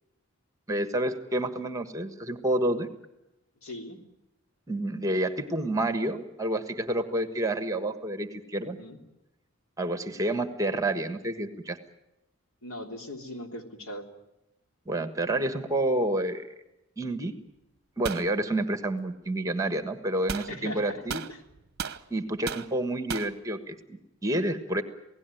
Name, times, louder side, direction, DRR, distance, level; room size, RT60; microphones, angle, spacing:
voice 1, 0.7-2.9 4.7-8.8 9.8-11.8 14.9-16.5 17.0-17.3 18.0-21.2 22.1-24.8, right 1 dB, 15° right, 9 dB, 1.4 m, -29 dB
voice 2, 3.6-4.0 8.6-9.0 12.6-14.0 20.5-21.0 21.3-21.4, left 1 dB, 75° left, 4 dB, 3.3 m, -40 dB
sound 1, 18.0-18.3 20.3-20.5 21.1-22.0 22.5-22.7 23.1-23.3, right 6 dB, 45° right, 0.9 m, -34 dB
28.0 x 17.5 x 9.2 m, 0.93 s
head